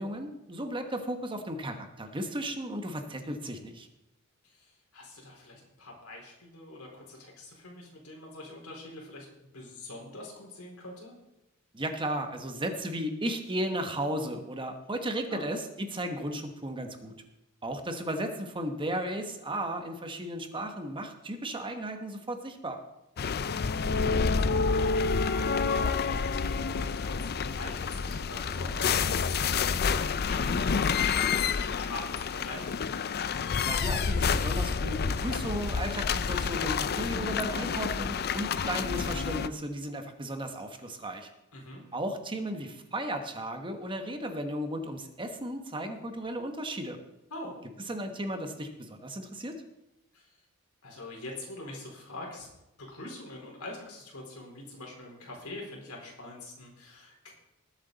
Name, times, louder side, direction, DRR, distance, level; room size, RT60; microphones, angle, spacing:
voice 1, 0.0-3.9 11.7-17.1 17.6-22.8 33.6-41.3 41.9-47.0 47.9-49.5, right 1 dB, 25° right, 6 dB, 1.1 m, -35 dB
voice 2, 4.4-11.1 15.3-15.5 23.6-25.3 25.5-32.8 41.5-41.8 47.3-47.5 50.1-50.4 50.8-52.5 52.8-57.3, left 2 dB, 75° left, -1 dB, 4.2 m, -44 dB
sound 1, 23.2-39.5, left 5 dB, 45° left, 0.5 m, -29 dB
20.0 x 7.9 x 4.0 m, 0.91 s
head